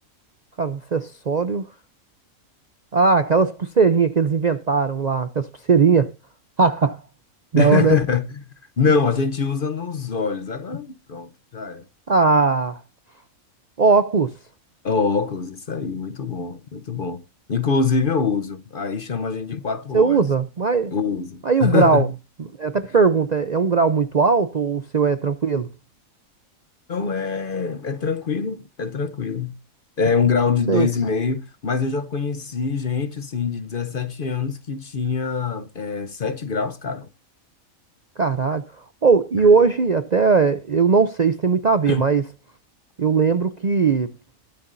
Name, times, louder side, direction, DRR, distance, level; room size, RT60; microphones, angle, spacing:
voice 1, 0.6-1.6 2.9-6.1 6.6-7.0 7.5-8.0 12.1-12.8 13.8-14.3 19.9-20.9 21.4-22.1 22.4-25.7 30.7-30.9 38.2-38.6 39.0-42.2 43.0-44.1, right 5 dB, 45° right, 0.6 m, -19 dB
voice 2, 7.5-8.4 8.8-11.8 14.8-17.2 17.5-20.3 20.9-22.1 26.9-29.5 30.0-37.1 39.4-39.6 41.9-42.0, left 5 dB, 45° left, 0.9 m, -24 dB
20.5 x 6.9 x 2.6 m
omnidirectional pair, 1.4 m